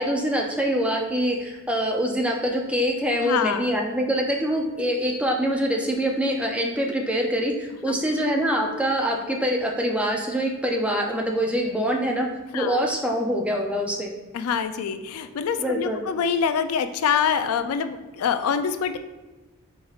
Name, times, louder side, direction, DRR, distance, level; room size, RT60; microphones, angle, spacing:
voice 1, 0.0-12.3 12.5-14.1 15.6-16.0, equal, 5° right, 1 dB, 0.4 m, -24 dB
voice 2, 3.2-3.7 12.5-12.8 14.3-19.0, left 7 dB, 80° left, 9 dB, 0.3 m, -25 dB
4.7 x 4.3 x 2.4 m, 1.2 s
head